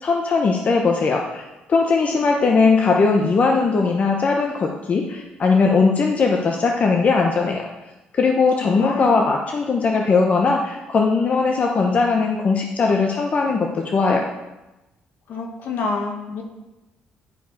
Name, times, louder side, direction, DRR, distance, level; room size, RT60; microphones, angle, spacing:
voice 1, 0.0-7.7 8.1-14.3, left 4 dB, 45° left, 2 dB, 0.8 m, -19 dB
voice 2, 8.6-9.1 15.3-16.4, left 4 dB, 70° left, 2 dB, 1.5 m, -27 dB
10.5 x 4.7 x 4.6 m, 1.0 s
cardioid pair, 85°, 3 cm